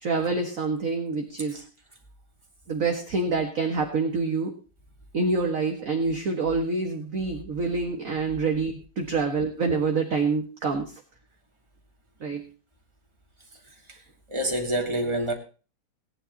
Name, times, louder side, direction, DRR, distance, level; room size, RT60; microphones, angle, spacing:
voice 1, 0.0-1.6 2.7-4.5 5.1-11.0 12.2-12.4, right 4 dB, 40° right, 1.7 m, -26 dB
voice 2, 13.7-14.0 14.3-15.3, right 1 dB, 15° right, 2.7 m, -28 dB
17.5 x 10.0 x 4.1 m
omnidirectional pair, 2.4 m